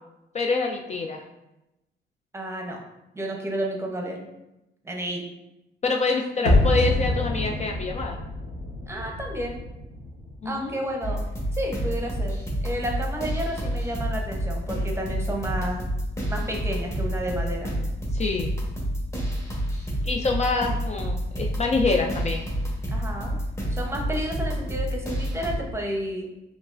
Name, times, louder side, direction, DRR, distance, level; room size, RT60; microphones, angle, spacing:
voice 1, 0.3-1.2 5.8-8.2 10.4-10.8 18.1-18.5 20.0-22.4, left 4 dB, 35° left, 2 dB, 0.4 m, -26 dB
voice 2, 2.3-2.8 3.1-4.2 4.8-5.3 8.9-9.6 10.4-11.3 11.5-15.8 16.3-17.8 22.9-23.4 23.7-26.3, right 1 dB, 15° right, 1 dB, 0.8 m, -31 dB
sound 1, 6.4-11.4 11.6-11.7, left 1 dB, 90° left, 1.4 m, -26 dB
sound 2, 11.0-25.6, equal, 15° left, 1.1 m, -29 dB
5.1 x 3.1 x 2.5 m, 0.93 s
cardioid pair, 90°, 20 cm